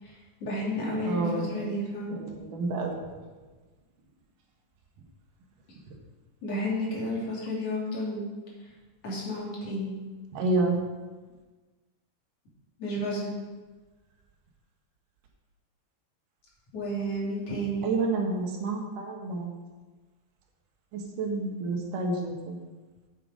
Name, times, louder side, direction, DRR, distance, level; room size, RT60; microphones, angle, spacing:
voice 1, 0.0-2.2 6.4-8.3 8.6-8.7 9.0-9.9 12.8-13.3 16.7-17.9, equal, 45° left, -5 dB, 3.9 m, -31 dB
voice 2, 1.1-1.7 2.1-3.2 5.9-6.0 10.3-10.8 17.8-19.7 20.9-22.6, right 3 dB, 70° right, 1 dB, 2.9 m, -29 dB
8.9 x 8.1 x 5.1 m, 1.3 s
omnidirectional pair, 4.0 m